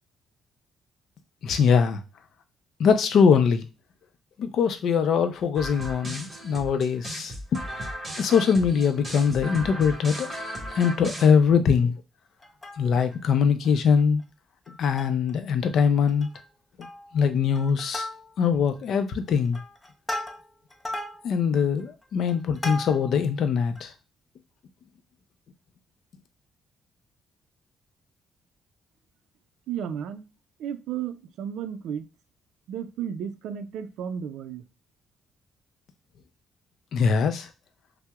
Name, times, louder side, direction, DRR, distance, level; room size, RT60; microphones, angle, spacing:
voice 1, 1.4-2.0 2.8-3.7 4.4-7.6 8.2-10.3 10.8-11.9 12.8-14.2 14.8-16.3 17.1-18.1 18.4-19.6 21.2-23.9 36.9-37.5, left 6 dB, 65° left, 0.5 m, -22 dB
sound 1, 5.6-11.3, equal, 20° right, 1.5 m, -36 dB
Plucked string instrument, 12.4-13.2 13.6-13.7 14.0-14.2 14.7-15.3 15.6-15.7 16.1-16.5 16.8-17.2 17.6-18.6 19.1-23.2 23.8-23.9, left 1 dB, 20° left, 0.6 m, -37 dB
voice 2, 29.7-30.2 30.6-32.1 32.7-34.7, right 8 dB, 85° right, 0.4 m, -33 dB
5.6 x 2.0 x 2.3 m
cardioid pair, 110°, 0 cm